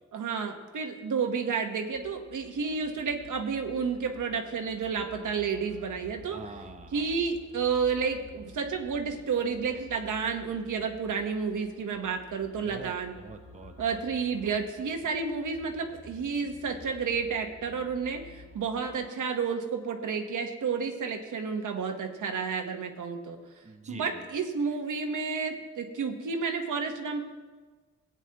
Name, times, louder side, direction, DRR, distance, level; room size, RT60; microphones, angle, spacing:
voice 1, 0.1-6.4 6.9-13.1 13.8-23.4 23.9-27.2, right 5 dB, 85° right, 4 dB, 1.2 m, -31 dB
sound 1, 1.9-19.0, left 3 dB, 50° left, 2.2 m, -52 dB
voice 2, 6.3-7.1 12.6-14.0 15.0-15.1 23.6-24.3, right 4 dB, 25° right, 5 dB, 0.7 m, -45 dB
18.0 x 9.0 x 2.9 m, 1.4 s
wide cardioid pair, 120°, 30 cm